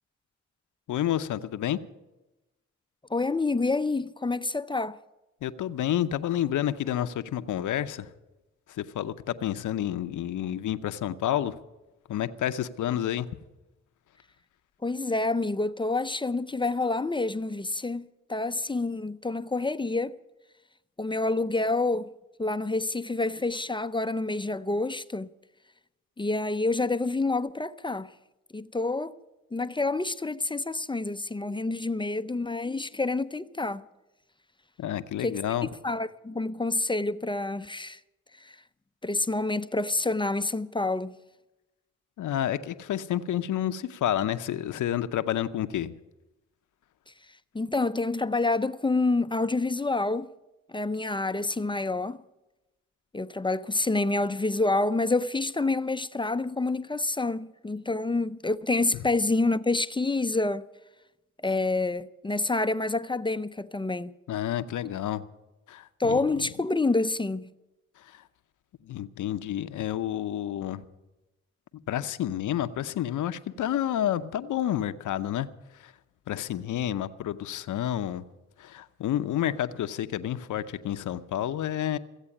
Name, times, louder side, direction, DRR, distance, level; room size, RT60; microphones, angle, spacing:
voice 1, 0.9-1.8 5.4-8.1 8.7-11.6 12.1-13.3 34.8-35.7 42.2-45.9 58.9-59.0 64.3-65.2 65.7-66.2 68.0-68.3 68.8-70.8 71.7-75.5 75.7-75.9 76.3-78.3 78.6-82.0, left 11 dB, 80° left, 0.7 m, -30 dB
voice 2, 3.1-5.0 14.8-20.2 21.0-22.1 22.4-25.3 26.2-28.1 28.5-29.2 29.5-33.8 35.2-35.4 35.8-38.0 38.4-38.6 39.0-41.2 47.5-50.3 50.7-52.2 53.1-60.7 61.4-64.2 66.0-67.5, left 2 dB, 15° left, 0.5 m, -28 dB
15.5 x 8.2 x 9.8 m
cardioid pair, 55°, 30 cm